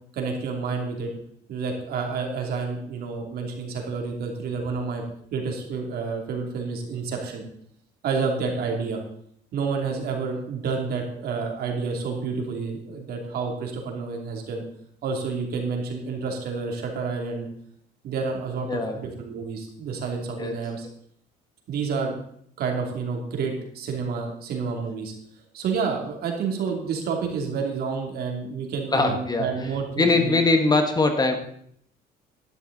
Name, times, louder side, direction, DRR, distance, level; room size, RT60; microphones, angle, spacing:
voice 1, 0.1-1.1 1.5-7.4 8.0-9.0 9.5-14.6 15.0-17.5 18.0-20.9 21.7-22.2 22.6-25.1 25.5-30.3, right 5 dB, 65° right, 2 dB, 2.8 m, -29 dB
voice 2, 18.7-19.0 20.4-20.6 28.9-29.5 30.0-31.3, left 3 dB, 25° left, 6 dB, 1.4 m, -21 dB
11.5 x 10.5 x 4.0 m, 0.67 s
cardioid pair, 110°, 17 cm